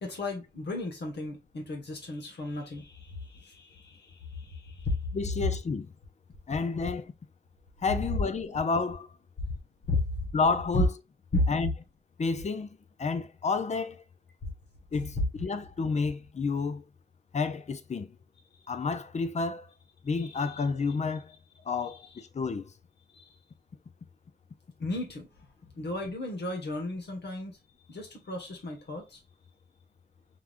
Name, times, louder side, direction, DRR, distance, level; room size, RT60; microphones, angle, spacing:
voice 1, 0.0-4.9 9.9-10.0 10.7-10.8 11.3-11.5 20.2-20.6 21.9-22.0 23.1-23.3 24.8-25.3 25.7-27.6 27.9-29.2, left 2 dB, 85° left, 1.4 m, -34 dB
voice 2, 5.1-5.9 6.5-7.1 7.8-9.1 10.3-10.9 11.5-11.7 12.2-14.0 14.9-16.8 17.3-18.1 18.7-19.7 20.0-21.4 21.7-22.7, left 4 dB, 45° left, 0.5 m, -30 dB
4.6 x 3.5 x 2.5 m
wide cardioid pair, 155°, 17 cm